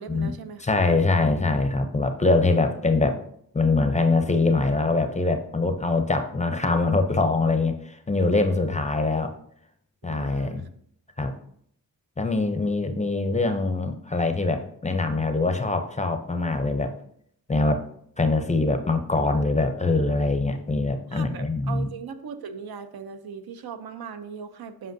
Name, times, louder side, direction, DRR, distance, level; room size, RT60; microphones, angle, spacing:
voice 1, 0.0-0.7 8.6-8.7 10.0-10.6 21.1-24.9, right 6 dB, 85° right, 9 dB, 0.6 m, -39 dB
voice 2, 0.6-3.2 3.5-9.3 10.0-10.6 11.2-11.3 12.2-16.9 17.5-17.8 18.2-21.9, left 3 dB, 20° left, 6 dB, 0.5 m, -23 dB
7.7 x 5.6 x 2.6 m, 0.67 s
wide cardioid pair, 170°, 36 cm